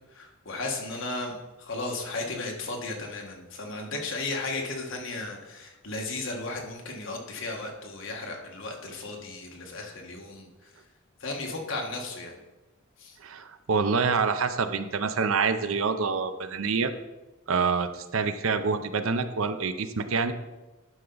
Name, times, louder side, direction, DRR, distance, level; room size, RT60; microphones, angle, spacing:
voice 1, 0.0-10.7 11.2-12.3 13.0-13.2, left 2 dB, 60° left, 1 dB, 1.5 m, -35 dB
voice 2, 13.2-16.9 17.5-20.3, right 5 dB, 70° right, 10 dB, 0.6 m, -26 dB
11.0 x 5.7 x 3.9 m, 1.1 s
head